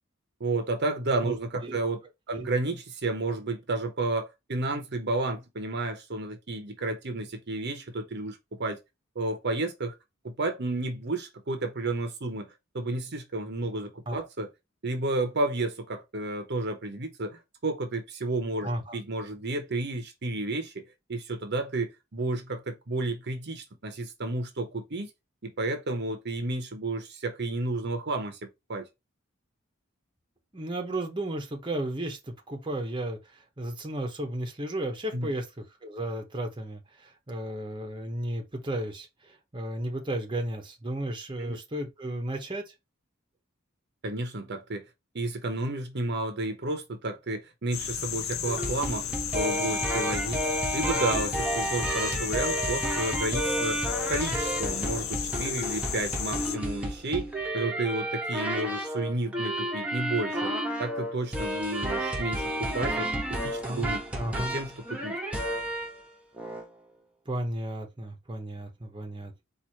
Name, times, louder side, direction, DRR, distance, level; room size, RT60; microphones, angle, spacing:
voice 1, 0.4-2.0 2.3-8.8 9.1-10.0 10.2-12.5 12.7-14.5 14.8-20.8 21.1-25.1 25.4-28.4 28.7-28.9 35.1-35.3 41.4-41.6 44.0-44.8 45.1-49.0 49.3-53.8 54.1-60.5 60.8-64.0 64.3-65.2, right 2 dB, 55° right, 1.0 m, -31 dB
voice 2, 18.6-19.0 30.5-42.7 63.6-64.6 67.3-69.4, right 1 dB, 25° right, 1.1 m, -34 dB
sound 1, 47.7-56.6, left 9 dB, 90° left, 0.7 m, -34 dB
sound 2, 48.5-66.0 66.4-66.7, right 1 dB, 5° right, 1.2 m, -31 dB
4.7 x 2.7 x 4.1 m
head